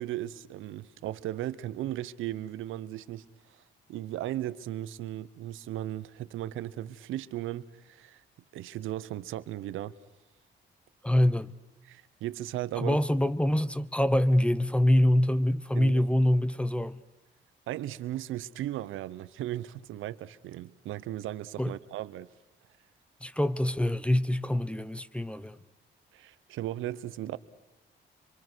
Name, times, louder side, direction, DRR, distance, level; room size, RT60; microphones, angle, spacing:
voice 1, 0.0-3.6 3.9-8.2 8.5-9.9 11.8-13.0 15.7-16.1 17.7-22.3 26.1-27.4, right 13 dB, 85° right, 0.9 m, -36 dB
voice 2, 11.0-11.5 12.8-17.0 21.6-21.7 23.2-25.6, left 1 dB, 5° left, 0.8 m, -25 dB
25.5 x 25.0 x 6.2 m
cardioid pair, 90°, 20 cm